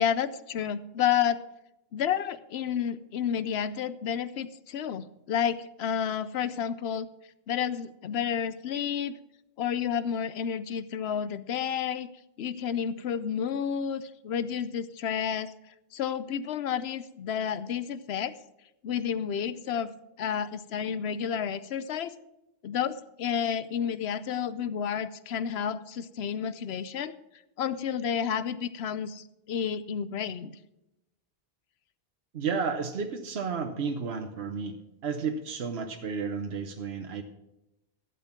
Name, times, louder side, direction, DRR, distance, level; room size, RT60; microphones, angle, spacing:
voice 1, 0.0-1.4 1.9-7.1 7.5-9.2 9.6-12.1 12.4-15.5 15.9-18.4 18.8-19.9 20.2-22.1 22.6-27.1 27.6-30.5, left 8 dB, 90° left, 15 dB, 0.9 m, -30 dB
voice 2, 32.3-34.7 35.0-37.2, right 5 dB, 85° right, 5 dB, 1.2 m, -32 dB
12.5 x 8.2 x 5.9 m, 0.91 s
omnidirectional pair, 1.0 m